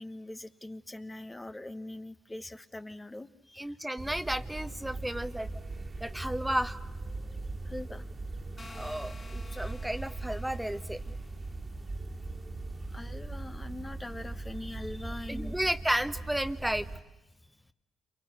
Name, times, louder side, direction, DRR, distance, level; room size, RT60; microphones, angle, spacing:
voice 1, 0.0-3.7 7.6-8.0 9.5-9.6 12.9-15.6, left 1 dB, 20° left, 9 dB, 1.3 m, -42 dB
voice 2, 3.6-5.5 6.0-6.8 8.7-11.0 15.3-16.9, right 1 dB, 5° right, 11 dB, 1.3 m, -32 dB
sound 1, 4.0-17.0, right 2 dB, 35° right, 2.1 m, -40 dB
sound 2, 8.6-11.5, left 3 dB, 35° left, 2.0 m, -52 dB
29.0 x 24.0 x 8.0 m, 1.0 s
hypercardioid pair, 50°, 0 cm